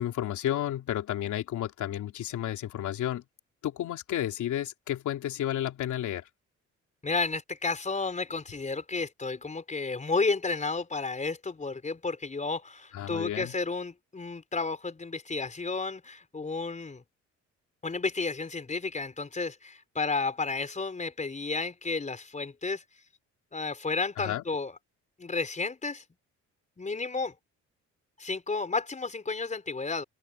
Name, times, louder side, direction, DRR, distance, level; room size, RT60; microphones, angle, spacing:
voice 1, 0.0-3.2 3.6-6.2 12.9-13.5 24.2-24.4, left 12 dB, 80° left, 3.4 m, -32 dB
voice 2, 7.0-17.0 17.8-22.8 23.5-24.8 25.2-26.0 26.8-27.3 28.2-30.0, left 4 dB, 25° left, 4.6 m, -32 dB
open air
cardioid pair, 95°, 30 cm